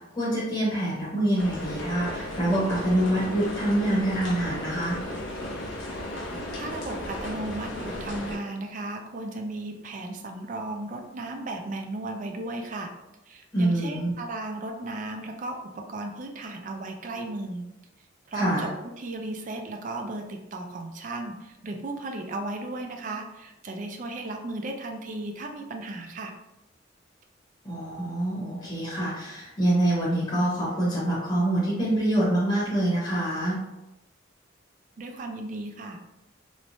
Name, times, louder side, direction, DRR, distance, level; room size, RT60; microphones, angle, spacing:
voice 1, 0.0-5.0 13.5-14.1 18.3-18.7 27.6-33.6, right 1 dB, 20° left, -8 dB, 0.8 m, -25 dB
sound 1, 1.4-8.4, left 1 dB, 75° left, 0.6 m, -35 dB
voice 2, 6.6-12.9 13.3-17.6 18.3-18.7 19.0-26.3 35.0-36.0, right 2 dB, 40° right, 4 dB, 0.3 m, -35 dB
3.1 x 2.1 x 2.6 m, 0.95 s
head